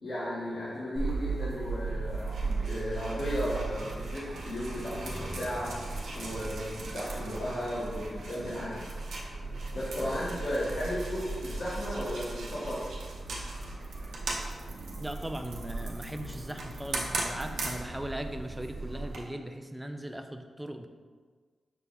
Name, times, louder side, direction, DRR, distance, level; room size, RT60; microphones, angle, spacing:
voice 1, 0.0-5.7 6.1-8.8 9.7-12.8, equal, 75° left, -10 dB, 1.3 m, -35 dB
sound 1, 0.9-19.2, right 3 dB, 90° right, 0.7 m, -37 dB
sound 2, 4.8-7.6 7.8-7.9, left 1 dB, 25° left, 0.9 m, -47 dB
voice 2, 15.0-20.9, right 1 dB, 10° right, 6 dB, 0.4 m, -39 dB
5.6 x 2.4 x 3.9 m, 1.5 s
cardioid pair, 70°, 0 cm